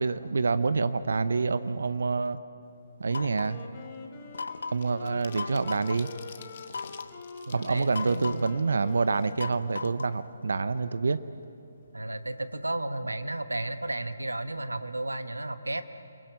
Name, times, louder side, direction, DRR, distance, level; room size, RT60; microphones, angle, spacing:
voice 1, 0.0-2.4 3.0-3.7 4.7-6.1 7.5-11.2, right 4 dB, 65° right, 14 dB, 0.8 m, -27 dB
sound 1, 2.7-3.0 3.3-9.8 10.1-10.2 10.5-11.5 11.8-12.0 12.3-12.6, left 8 dB, 45° left, 1.7 m, -52 dB
sound 2, 3.1-3.6 4.3-4.9 5.4-6.0 6.7-7.2 7.9-8.6 9.4-10.2, left 4 dB, 70° left, 1.0 m, -37 dB
Wind instrument woodwind instrument, 3.3-10.0, left 4 dB, 30° left, 3.1 m, -45 dB
voice 2, 5.0-5.4 7.5-8.6 11.9-15.8, right 2 dB, 85° right, 10 dB, 1.4 m, -33 dB
29.5 x 20.5 x 8.1 m, 2.7 s
figure-of-eight pair, 145°, 0 cm